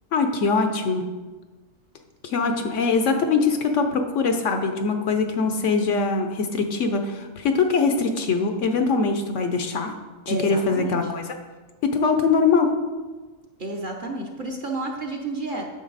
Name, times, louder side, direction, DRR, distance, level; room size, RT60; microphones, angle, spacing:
voice 1, 0.1-1.0 2.2-9.9 10.3-11.2 11.8-12.7, left 4 dB, 65° left, 6 dB, 0.9 m, -22 dB
voice 2, 10.3-11.0 13.6-15.7, right 2 dB, 40° right, 0 dB, 0.9 m, -31 dB
9.3 x 6.6 x 4.0 m, 1.3 s
omnidirectional pair, 1.5 m